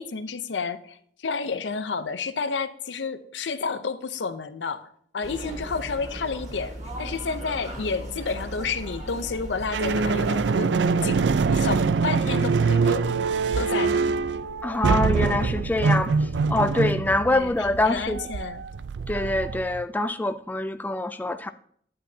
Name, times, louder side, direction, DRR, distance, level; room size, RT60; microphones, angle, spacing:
voice 1, 0.0-11.2 11.5-13.2 13.5-14.1 17.3-18.7, left 4 dB, 80° left, 0.6 m, -31 dB
sound 1, 5.2-10.4, right 1 dB, 40° right, 1.6 m, -37 dB
sound 2, 9.7-19.8, right 4 dB, 80° right, 0.4 m, -24 dB
voice 2, 14.6-18.2 19.1-21.5, left 2 dB, 10° left, 0.3 m, -25 dB
10.5 x 8.6 x 2.8 m
head